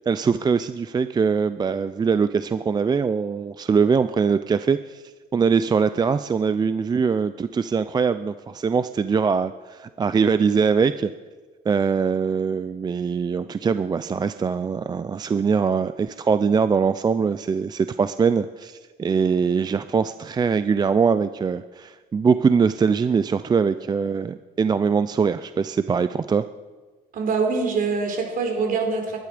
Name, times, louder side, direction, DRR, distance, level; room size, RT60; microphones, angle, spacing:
voice 1, 0.1-5.0 5.3-11.1 11.7-26.4, right 5 dB, 25° right, 12 dB, 0.5 m, -22 dB
voice 2, 27.1-29.2, right 4 dB, 55° right, 3 dB, 3.8 m, -24 dB
21.0 x 12.0 x 5.1 m, 1.4 s
cardioid pair, 110°, 17 cm